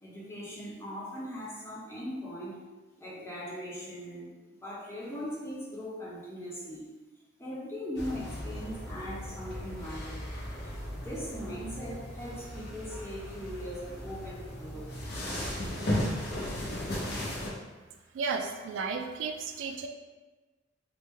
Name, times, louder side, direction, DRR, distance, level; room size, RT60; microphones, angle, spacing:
voice 1, 0.0-2.6 3.0-4.3 4.6-6.8 7.4-10.3 10.9-14.9, equal, 15° left, -6 dB, 0.7 m, -40 dB
sound 1, 8.0-17.5, left 1 dB, 55° left, 0.7 m, -36 dB
voice 2, 18.1-19.9, right 5 dB, 75° right, 4 dB, 0.3 m, -33 dB
3.3 x 2.0 x 3.2 m, 1.2 s
head